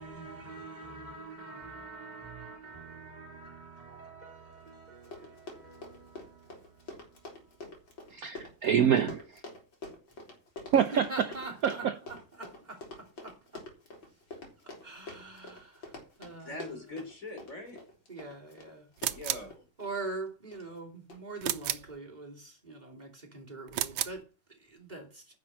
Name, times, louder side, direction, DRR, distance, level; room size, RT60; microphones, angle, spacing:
voice 1, 0.0-7.7 8.1-8.2 10.9-13.6 14.1-14.2 14.6-16.9 18.1-18.9 19.8-25.4, right 3 dB, 20° right, 3.1 m, -44 dB
Run, 4.7-4.8 5.0-19.9 20.5-20.8 21.1-21.2, left 2 dB, 90° left, 4.1 m, -46 dB
voice 2, 8.1-9.4 10.7-11.3 11.6-11.9, right 8 dB, 60° right, 1.0 m, -26 dB
voice 3, 16.4-17.8 19.1-19.7, left 2 dB, 45° left, 3.7 m, -42 dB
sound 1, 19.0-19.5 21.4-21.9 23.7-24.2, right 12 dB, 80° right, 1.5 m, -32 dB
10.5 x 6.3 x 7.4 m
omnidirectional pair, 2.0 m